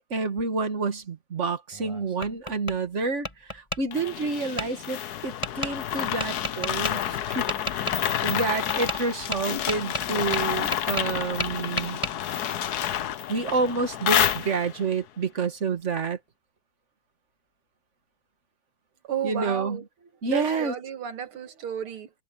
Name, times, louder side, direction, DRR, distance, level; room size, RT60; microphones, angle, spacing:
voice 1, 0.1-7.9 8.2-12.0 13.3-16.2 19.2-19.8 20.2-20.8, right 4 dB, 35° right, 1.8 m, -29 dB
Tap, 1.7-2.8 3.2-3.8 4.6-4.7 5.4-5.7 6.2-6.9 7.5-8.0 8.7-9.0 9.3-11.1 11.4-12.1, equal, 15° left, 5.3 m, -31 dB
sound 1, 3.9-14.9, left 11 dB, 60° left, 1.1 m, -29 dB
voice 2, 19.0-19.9 20.2-22.1, right 9 dB, 80° right, 2.8 m, -32 dB
omnidirectional pair, 2.3 m